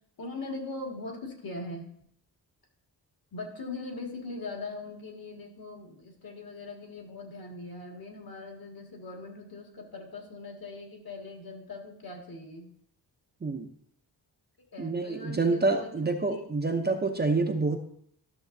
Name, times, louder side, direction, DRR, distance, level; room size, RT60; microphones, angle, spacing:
voice 1, 0.2-1.9 3.3-12.7 14.7-15.9 16.3-16.4, left 3 dB, 55° left, 1 dB, 1.9 m, -40 dB
voice 2, 14.8-17.8, right 3 dB, 25° right, 4 dB, 0.6 m, -27 dB
13.0 x 6.7 x 2.6 m, 0.67 s
wide cardioid pair, 150°, 41 cm